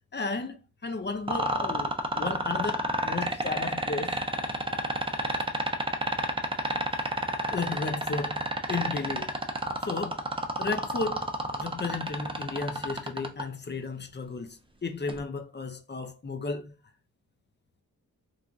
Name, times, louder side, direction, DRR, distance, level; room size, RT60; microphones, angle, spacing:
voice 1, 0.1-0.6 0.8-4.2 7.5-9.3 9.8-10.2 10.6-16.7, left 3 dB, 30° left, 0.7 m, -34 dB
sound 1, 1.3-13.4 15.1-15.2, right 1 dB, 15° right, 0.6 m, -29 dB
3.2 x 2.4 x 2.4 m
cardioid pair, 50°, 35 cm